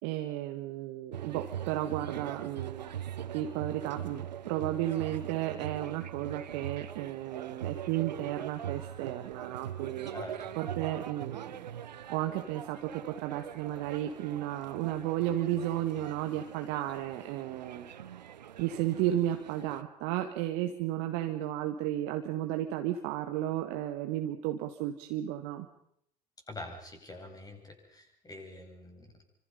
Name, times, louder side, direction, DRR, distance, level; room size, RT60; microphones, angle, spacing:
voice 1, 0.0-2.9 3.3-10.1 10.5-11.7 12.1-17.9 18.6-25.7, right 13 dB, 60° right, 5 dB, 1.7 m, -33 dB
sound 1, 1.1-19.8, right 10 dB, 85° right, 0.9 m, -42 dB
voice 2, 10.1-10.5 26.5-29.2, left 2 dB, 15° left, 2 dB, 7.9 m, -45 dB
26.5 x 25.5 x 5.5 m, 0.71 s
figure-of-eight pair, 70°, 21 cm